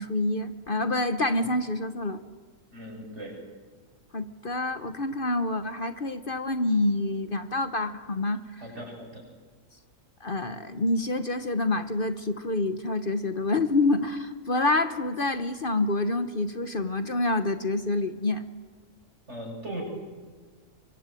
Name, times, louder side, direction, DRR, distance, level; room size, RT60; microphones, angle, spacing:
voice 1, 0.0-2.2 4.1-8.4 10.2-18.4, left 2 dB, 40° left, 10 dB, 1.2 m, -27 dB
voice 2, 2.7-3.4 8.6-9.2 19.3-19.8, right 1 dB, 55° right, 0 dB, 8.2 m, -38 dB
24.5 x 24.0 x 9.1 m, 1.5 s
omnidirectional pair, 1.4 m